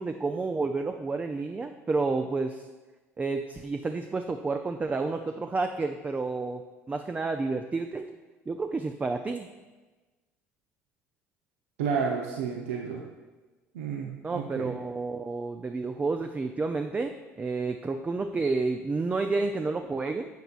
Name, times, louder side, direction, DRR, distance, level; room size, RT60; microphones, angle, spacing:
voice 1, 0.0-2.6 3.2-6.6 6.9-8.1 8.5-9.5 14.2-20.3, right 3 dB, 20° right, 6 dB, 0.5 m, -30 dB
voice 2, 11.8-13.0 13.7-14.7, right 6 dB, 70° right, 0 dB, 0.7 m, -31 dB
12.0 x 7.8 x 2.4 m, 1.2 s
figure-of-eight pair, 60°, 8 cm